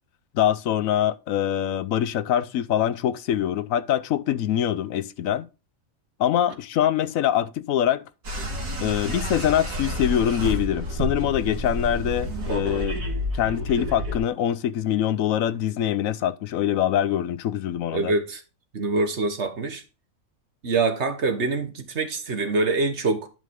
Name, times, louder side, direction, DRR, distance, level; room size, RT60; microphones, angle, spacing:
voice 1, 0.3-5.5 6.2-8.0 8.8-13.0 13.3-18.1, left 10 dB, 80° left, 1.1 m, -24 dB
sound 1, 8.2-14.2, equal, 75° right, 2.6 m, -29 dB
voice 2, 17.9-18.4 18.7-19.8 20.6-23.3, right 3 dB, 55° right, 1.6 m, -25 dB
11.0 x 5.4 x 3.7 m
omnidirectional pair, 1.4 m